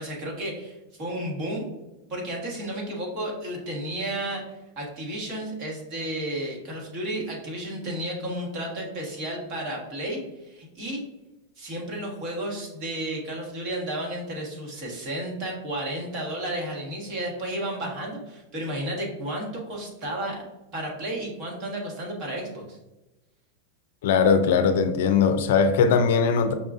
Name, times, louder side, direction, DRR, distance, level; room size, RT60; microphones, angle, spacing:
voice 1, 0.0-1.7 2.1-11.0 11.6-20.4 20.7-22.8, right 1 dB, 45° right, -1 dB, 1.4 m, -32 dB
voice 2, 24.0-26.5, left 6 dB, 70° left, 9 dB, 0.4 m, -20 dB
5.5 x 2.3 x 2.5 m, 1.0 s
hypercardioid pair, 120°, 0 cm